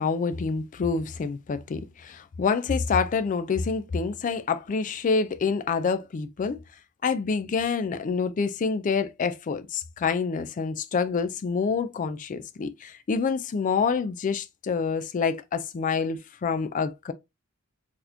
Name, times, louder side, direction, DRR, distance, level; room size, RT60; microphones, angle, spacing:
voice 1, 0.0-6.6 7.0-17.1, left 5 dB, 35° left, 0.3 m, -27 dB
4.0 x 2.9 x 2.6 m
head